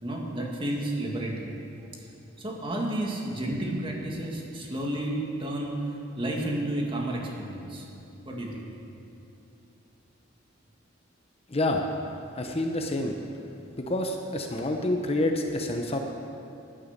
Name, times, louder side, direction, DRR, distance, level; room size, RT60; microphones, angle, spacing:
voice 1, 0.0-1.5 1.9-2.0 2.4-5.8 6.2-7.8 8.2-8.7, right 1 dB, 25° right, -1 dB, 2.0 m, -31 dB
voice 2, 11.5-11.8 12.3-13.2 13.8-16.0, left 1 dB, 30° left, 3 dB, 0.8 m, -28 dB
14.0 x 10.0 x 6.6 m, 2.8 s
head